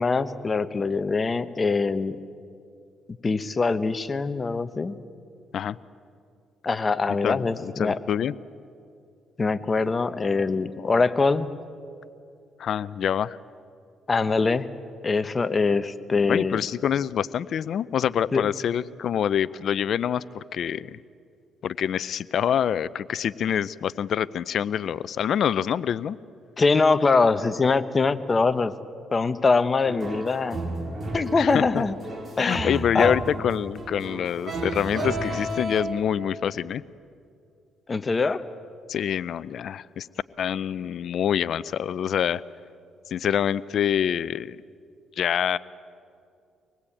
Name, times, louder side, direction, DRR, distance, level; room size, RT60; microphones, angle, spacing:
voice 1, 0.0-2.2 3.2-5.0 6.6-8.0 9.4-11.5 14.1-14.7 15.0-16.6 18.3-18.5 26.6-28.7 29.1-30.6 31.1-31.9 32.4-33.2 37.9-38.4, left 4 dB, 30° left, 12 dB, 1.1 m, -23 dB
voice 2, 7.2-8.3 10.8-10.9 12.6-13.4 16.3-21.0 21.6-26.2 31.4-31.8 32.4-36.8 38.9-40.1 40.4-42.4 43.1-44.6 45.2-45.6, left 9 dB, 65° left, 18 dB, 0.6 m, -26 dB
sound 1, 29.9-35.8, right 1 dB, 35° right, 3.3 m, -32 dB
25.5 x 19.5 x 8.7 m, 2.4 s
cardioid pair, 90°, 0 cm